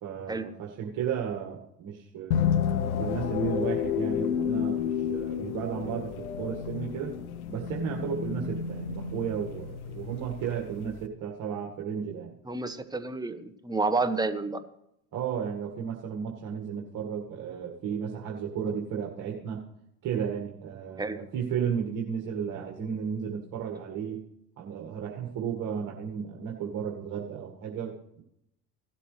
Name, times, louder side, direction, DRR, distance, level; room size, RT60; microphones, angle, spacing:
voice 1, 0.0-7.1 7.5-12.3 15.1-19.6 20.0-24.2 24.6-28.2, right 7 dB, 45° right, 0 dB, 2.1 m, -34 dB
sound 1, 2.3-11.1, left 8 dB, 80° left, 1.0 m, -31 dB
voice 2, 12.5-14.6 21.0-21.2, right 3 dB, 10° right, 8 dB, 1.4 m, -29 dB
17.5 x 12.0 x 3.4 m, 0.77 s
hypercardioid pair, 70°, 42 cm